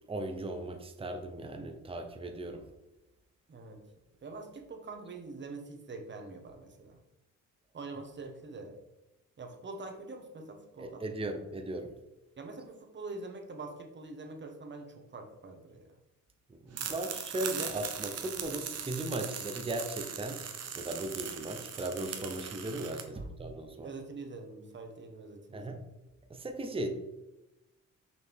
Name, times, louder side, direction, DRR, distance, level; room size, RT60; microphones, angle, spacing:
voice 1, 0.0-2.6 10.8-11.9 16.5-24.0 25.5-25.8 26.3-27.0, right 1 dB, 20° right, 5 dB, 0.8 m, -37 dB
voice 2, 3.5-3.8 4.2-7.0 7.7-8.8 9.4-11.0 12.4-15.9 23.1-23.3 23.6-25.9, right 3 dB, 40° right, 4 dB, 1.4 m, -45 dB
sound 1, 16.7-23.0, right 7 dB, 55° right, 1.1 m, -40 dB
6.5 x 5.2 x 3.6 m, 0.95 s
cardioid pair, 90°, 30 cm